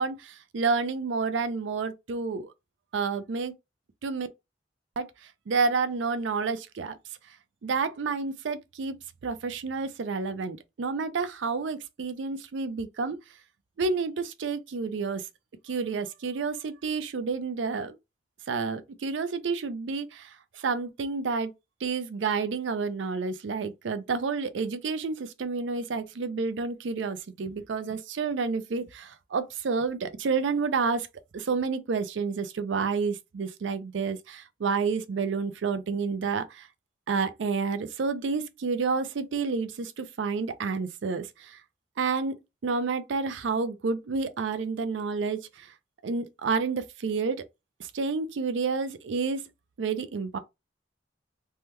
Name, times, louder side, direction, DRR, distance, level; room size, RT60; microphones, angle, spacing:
voice 1, 0.0-2.5 2.9-3.5 4.0-4.3 5.0-5.1 5.5-6.9 7.6-9.0 9.2-13.2 13.8-15.3 15.6-18.0 18.5-21.5 21.8-31.1 31.3-36.7 37.1-41.6 42.0-42.3 42.6-45.7 46.0-47.4 47.8-49.4 49.8-50.4, right 4 dB, 75° right, 0.4 m, -29 dB
3.4 x 2.2 x 2.9 m
head